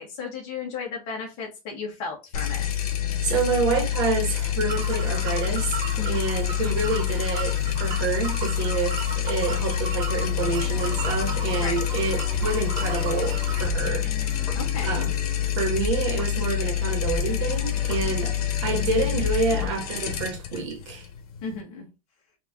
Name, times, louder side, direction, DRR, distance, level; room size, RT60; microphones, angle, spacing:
voice 1, 0.0-2.9 6.0-6.3 11.6-11.9 14.5-15.0 18.0-18.3 21.4-21.8, left 5 dB, 35° left, 1.6 m, -35 dB
sound 1, 2.3-21.6, left 11 dB, 80° left, 1.0 m, -27 dB
voice 2, 3.2-14.1 14.8-15.1 15.5-21.1, right 4 dB, 50° right, 1.5 m, -28 dB
sound 2, 4.7-13.7, right 4 dB, 20° right, 0.7 m, -36 dB
sound 3, 10.3-20.1, right 1 dB, 5° left, 1.1 m, -37 dB
4.5 x 2.9 x 3.6 m
supercardioid pair, 175°, 19 cm